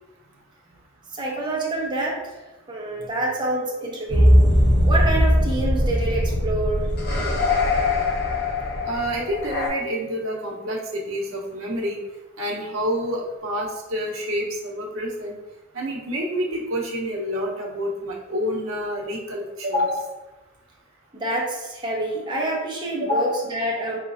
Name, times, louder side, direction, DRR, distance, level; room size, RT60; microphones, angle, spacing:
voice 1, 1.2-2.2 2.7-4.4 4.9-6.8 21.1-24.0, right 2 dB, 20° right, -3 dB, 0.8 m, -27 dB
sound 1, 4.1-9.7, left 1 dB, 50° left, 0.9 m, -20 dB
voice 2, 8.9-12.0 12.4-15.3 15.7-20.1 23.0-23.4, equal, 70° right, -2 dB, 0.8 m, -27 dB
4.0 x 2.9 x 2.5 m, 1.1 s
head